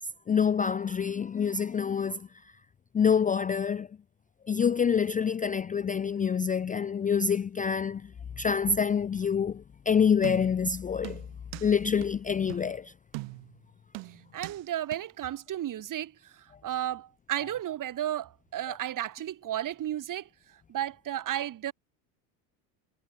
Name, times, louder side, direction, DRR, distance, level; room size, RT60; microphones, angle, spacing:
voice 1, 0.3-2.3 2.9-3.9 4.5-8.1 8.4-11.2 11.6-12.9, left 6 dB, 20° left, 0.4 m, -26 dB
sound 1, 10.2-10.7 11.0-11.7 12.0-12.1 12.5-12.7 13.1-13.6 13.9-14.6 14.9-15.0, right 27 dB, 75° right, 1.8 m, -41 dB
voice 2, 14.3-20.3 20.7-21.7, right 12 dB, 45° right, 1.7 m, -33 dB
supercardioid pair, 105°, 45 cm